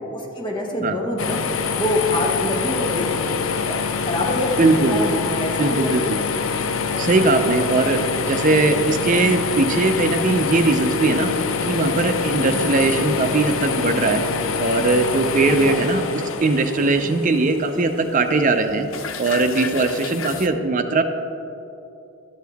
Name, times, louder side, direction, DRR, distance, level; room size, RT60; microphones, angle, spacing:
voice 1, 0.1-1.4 1.7-3.4 3.7-6.1 12.5-12.7 15.5-15.8, left 1 dB, 25° left, 0 dB, 1.0 m, -26 dB
sound 1, 1.2-20.5, left 5 dB, 65° left, 0.5 m, -26 dB
voice 2, 4.6-5.0 5.6-6.2 6.9-11.3 11.6-14.3 14.6-18.9 19.2-21.0, right 3 dB, 40° right, 7 dB, 0.5 m, -20 dB
11.5 x 6.5 x 3.5 m, 2.8 s
head